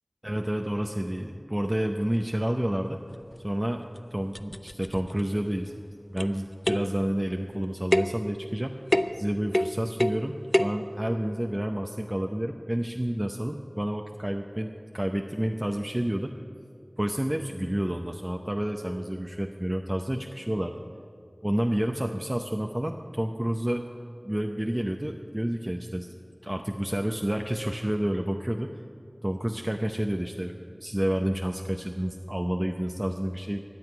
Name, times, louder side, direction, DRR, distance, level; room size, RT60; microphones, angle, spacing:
voice 1, 0.2-3.0 3.4-5.8 6.1-8.8 9.1-16.4 17.0-20.8 21.4-23.8 24.2-26.1 26.4-28.7 29.2-33.6, right 1 dB, 25° right, 3 dB, 0.7 m, -29 dB
sound 1, 3.3-3.4 4.0-4.1 4.3-5.2 6.2-6.4 6.6-7.0 7.9-8.2 8.9-9.2 9.5-10.2 10.5-10.8, left 1 dB, 25° left, 0.5 m, -26 dB
14.0 x 7.9 x 9.8 m, 2.4 s
wide cardioid pair, 45°, 0 cm